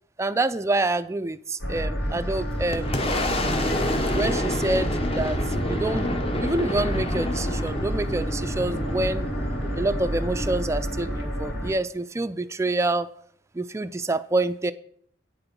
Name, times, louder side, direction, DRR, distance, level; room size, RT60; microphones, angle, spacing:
voice 1, 0.2-3.1 4.1-9.3 9.8-13.1 13.5-14.7, right 2 dB, 15° right, 11 dB, 0.4 m, -27 dB
sound 1, 1.6-11.7, equal, 65° left, 2.9 m, -29 dB
Boom, 2.1-11.5, left 1 dB, 30° left, 1.0 m, -29 dB
9.1 x 7.0 x 5.3 m, 0.62 s
head